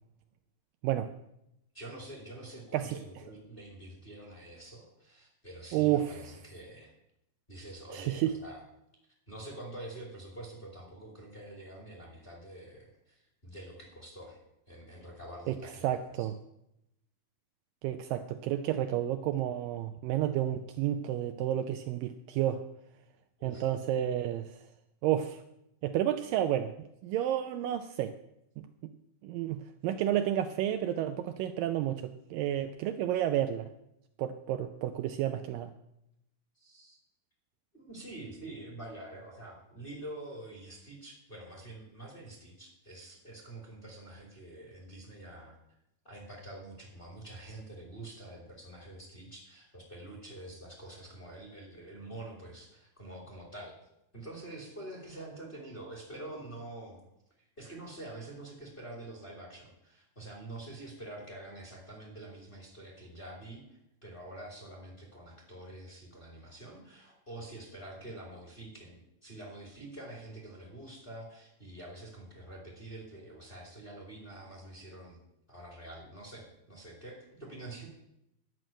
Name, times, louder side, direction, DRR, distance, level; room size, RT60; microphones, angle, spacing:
voice 1, 1.7-6.9 7.5-8.6 9.3-14.4 14.7-16.3 23.4-23.7 36.6-37.0 37.7-45.5 46.0-53.7 54.1-57.0 57.4-75.2 75.5-77.9, right 1 dB, 15° left, -1 dB, 2.4 m, -46 dB
voice 2, 5.7-6.1 7.9-8.3 15.5-15.6 15.8-16.4 17.8-22.6 23.4-24.6 25.0-25.4 25.8-26.8 27.0-28.1 28.6-28.7 29.2-33.7 34.2-35.7, right 11 dB, 80° right, 7 dB, 2.1 m, -31 dB
11.0 x 6.4 x 8.9 m, 0.82 s
omnidirectional pair, 4.3 m